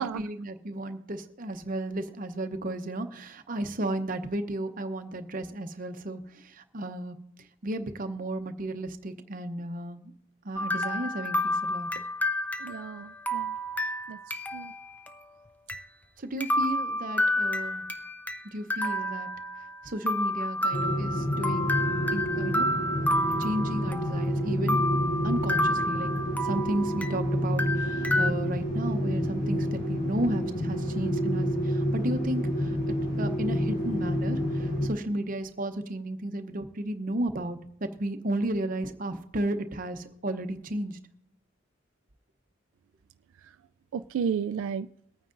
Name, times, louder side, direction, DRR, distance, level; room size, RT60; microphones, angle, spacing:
voice 1, 0.0-7.2 7.6-10.1 10.4-11.9 16.2-17.9 18.4-19.3 19.8-21.7 22.1-22.7 23.4-24.8 25.2-26.1 26.4-41.0, right 1 dB, 45° right, 8 dB, 0.7 m, -33 dB
sound 1, 10.6-14.8 15.1-15.2 15.7-15.8 16.4-18.4 18.7-19.7 20.1-24.3 24.7-27.2 27.6-28.3, left 1 dB, 10° left, 0.4 m, -29 dB
voice 2, 12.6-13.5 14.1-14.7 43.9-44.9, right 7 dB, 85° right, 11 dB, 0.3 m, -33 dB
sound 2, 20.7-34.9, equal, 65° left, 3.5 m, -29 dB
22.5 x 9.2 x 2.5 m, 0.76 s
head